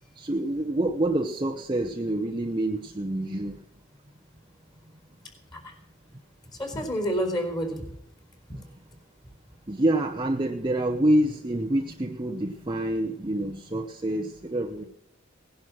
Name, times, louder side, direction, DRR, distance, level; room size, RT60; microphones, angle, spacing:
voice 1, 0.2-3.6 9.7-14.8, right 1 dB, 25° right, 2 dB, 0.8 m, -27 dB
voice 2, 6.6-7.8 8.5-8.6, equal, 20° left, 5 dB, 4.3 m, -29 dB
18.5 x 11.0 x 6.1 m, 0.74 s
head